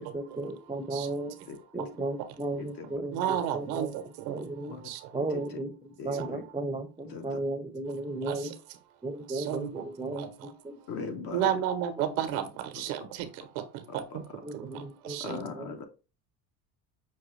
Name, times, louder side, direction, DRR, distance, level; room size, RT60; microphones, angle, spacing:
voice 1, 0.0-1.4 1.7-3.9 4.3-4.8 5.1-8.5 9.0-10.8 12.0-12.2 14.4-15.8, right 2 dB, 10° right, 0.6 m, -35 dB
voice 2, 1.5-1.8 2.6-2.9 4.7-4.8 5.3-5.4 6.0-6.4 7.1-7.3 10.9-11.5 13.9-14.2 15.2-15.8, left 5 dB, 55° left, 1.0 m, -39 dB
voice 3, 3.1-4.4 4.8-5.2 6.1-6.3 8.2-8.5 9.3-10.5 11.3-15.4, right 10 dB, 85° right, 0.8 m, -33 dB
5.9 x 2.3 x 3.1 m
supercardioid pair, 100°, 42 cm